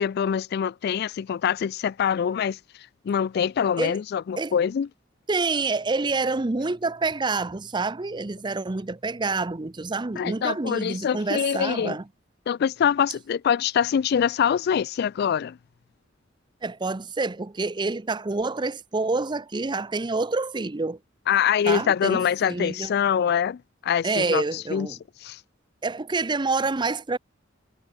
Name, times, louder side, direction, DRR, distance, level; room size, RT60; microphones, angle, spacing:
voice 1, 0.0-2.6 3.0-4.9 10.2-12.0 12.5-15.6 21.3-24.4 24.7-24.9 25.2-25.4, left 8 dB, 55° left, 0.3 m, -24 dB
voice 2, 5.3-12.0 16.6-21.0 21.6-22.9 24.0-25.0 25.8-27.2, right 3 dB, 25° right, 0.6 m, -27 dB
head